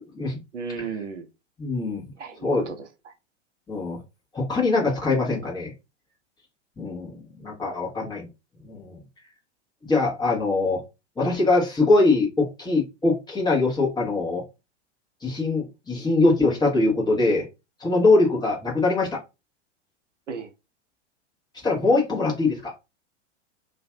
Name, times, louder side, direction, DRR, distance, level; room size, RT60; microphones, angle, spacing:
voice 1, 0.5-1.3 2.2-3.1 7.6-7.8 20.3-20.5, right 5 dB, 80° right, 0.6 m, -35 dB
voice 2, 1.6-2.0 2.4-2.6 3.7-4.0 4.3-5.7 6.8-8.3 8.6-9.0 9.8-10.8 11.2-14.4 15.2-17.4 17.8-19.2 21.6-22.7, left 3 dB, 10° left, 0.9 m, -22 dB
2.5 x 2.3 x 2.2 m
figure-of-eight pair, 95°, 36 cm